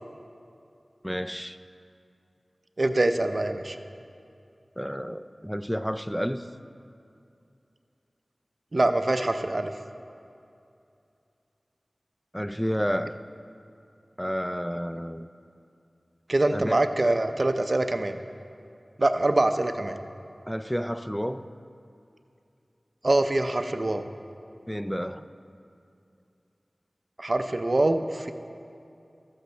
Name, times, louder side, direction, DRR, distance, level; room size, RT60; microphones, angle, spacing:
voice 1, 1.0-1.6 4.8-6.5 12.3-13.2 14.2-15.3 16.5-16.8 20.5-21.5 24.7-25.3, equal, 5° left, 11 dB, 0.4 m, -30 dB
voice 2, 2.8-3.8 8.7-9.7 16.3-18.2 19.0-20.0 23.0-24.0 27.2-28.3, right 2 dB, 55° right, 8 dB, 0.5 m, -24 dB
13.5 x 8.0 x 3.3 m, 2.6 s
wide cardioid pair, 45°, 0 cm